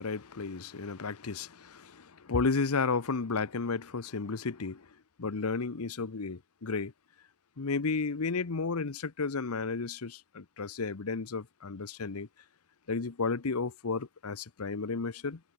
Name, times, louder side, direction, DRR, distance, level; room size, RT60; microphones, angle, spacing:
voice 1, 0.0-4.9 5.2-6.9 7.6-12.3 12.9-15.4, left 4 dB, 90° left, 0.9 m, -33 dB
head